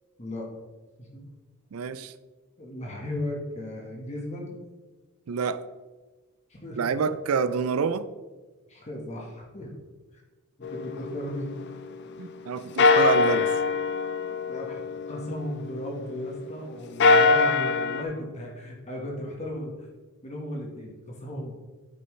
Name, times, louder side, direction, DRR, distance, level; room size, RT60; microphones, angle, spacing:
voice 1, 1.7-2.1 5.3-5.6 6.8-8.1 12.2-13.5, right 6 dB, 75° right, 13 dB, 0.4 m, -27 dB
voice 2, 2.6-4.6 6.5-7.0 8.7-9.7 10.1-10.2 10.6-11.6 14.5-19.9 20.2-21.5, left 1 dB, 30° left, -1 dB, 1.2 m, -36 dB
sound 1, 10.6-12.4 12.8-16.3 16.8-18.0, left 4 dB, 50° left, 0.5 m, -24 dB
9.1 x 5.6 x 3.2 m, 1.3 s
head